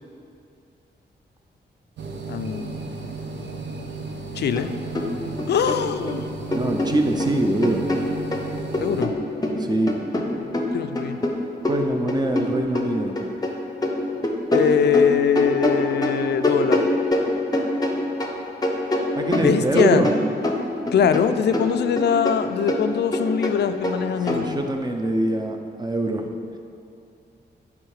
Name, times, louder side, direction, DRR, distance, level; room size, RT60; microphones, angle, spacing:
sound 1, 2.0-9.0, right 3 dB, 75° right, 0.7 m, -34 dB
voice 1, 2.3-2.8 4.3-4.7 5.5-6.3 8.8-9.1 10.7-11.2 14.5-16.9 19.4-20.0 20.9-24.7, left 7 dB, 70° left, 10 dB, 0.4 m, -22 dB
sound 2, 4.6-4.7 5.0-6.2 6.5-8.5 8.7-13.5 13.8-18.4 18.6-21.3 21.5-24.4, left 1 dB, 20° left, 0.8 m, -25 dB
voice 2, 6.5-7.8 9.6-10.0 11.6-13.2 19.1-20.1 24.3-26.3, right 1 dB, 20° right, 4 dB, 0.7 m, -23 dB
9.6 x 3.6 x 4.9 m, 2.6 s
wide cardioid pair, 105°, 18 cm